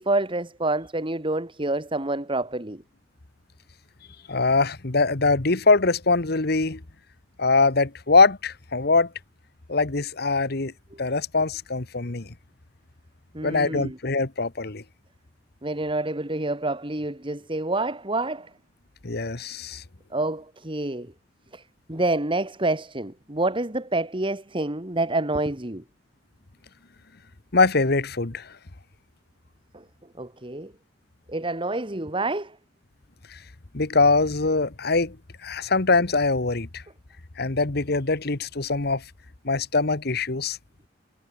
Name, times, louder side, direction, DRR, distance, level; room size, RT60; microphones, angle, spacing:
voice 1, 0.0-2.8 10.9-11.0 13.3-14.0 15.6-18.5 20.1-21.1 21.5-21.6 21.9-25.8 29.7-29.8 30.2-30.7 31.3-32.6, right 2 dB, 30° right, 2.5 m, -27 dB
voice 2, 4.3-6.8 7.4-9.1 9.7-10.7 11.0-12.3 13.4-14.8 19.0-19.8 27.5-28.5 33.3-33.4 33.7-35.2 35.4-36.8 37.4-39.0 39.4-40.6, left 3 dB, 60° left, 1.4 m, -22 dB
head